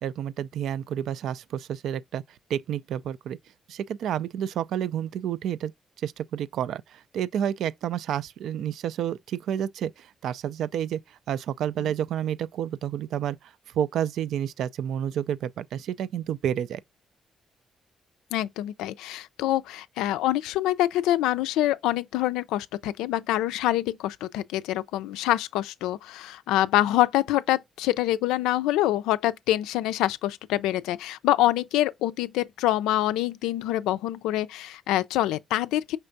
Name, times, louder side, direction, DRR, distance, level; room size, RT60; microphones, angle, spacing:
voice 1, 0.0-2.2 2.5-3.4 3.7-5.7 6.0-16.8, right 10 dB, 75° right, 0.3 m, -30 dB
voice 2, 18.3-36.0, left 14 dB, 90° left, 0.3 m, -25 dB
5.5 x 3.3 x 2.5 m
supercardioid pair, 55°, 0 cm